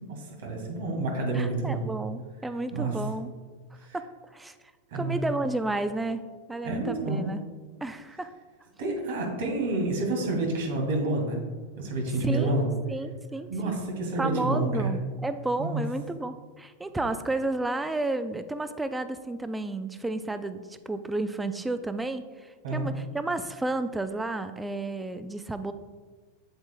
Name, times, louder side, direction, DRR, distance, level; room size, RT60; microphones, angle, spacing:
voice 1, 0.1-1.8 2.7-3.0 3.8-4.0 4.9-5.2 6.6-7.2 8.8-11.4 11.8-12.7 13.5-15.0 15.6-15.8 22.6-22.9, right 2 dB, 75° right, 0 dB, 1.9 m, -29 dB
voice 2, 1.3-3.3 3.9-4.1 4.3-4.5 4.9-6.2 6.5-7.4 7.8-8.3 12.2-12.5 12.9-13.8 14.2-25.7, right 2 dB, 10° right, 10 dB, 0.4 m, -32 dB
7.8 x 7.1 x 2.3 m, 1.4 s
hypercardioid pair, 125°, 0 cm